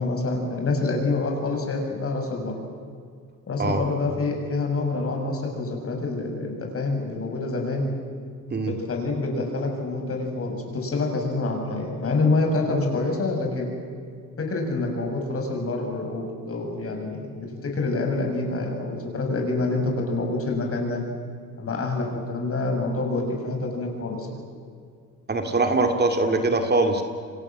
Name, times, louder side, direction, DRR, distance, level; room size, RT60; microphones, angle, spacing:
voice 1, 0.0-2.6 3.5-8.0 8.6-13.7 14.4-21.0 21.6-24.4, left 3 dB, 40° left, 2 dB, 7.7 m, -27 dB
voice 2, 25.3-27.0, right 3 dB, 30° right, 5 dB, 2.7 m, -22 dB
29.5 x 24.5 x 7.7 m, 2.2 s
cardioid pair, 95°, 34 cm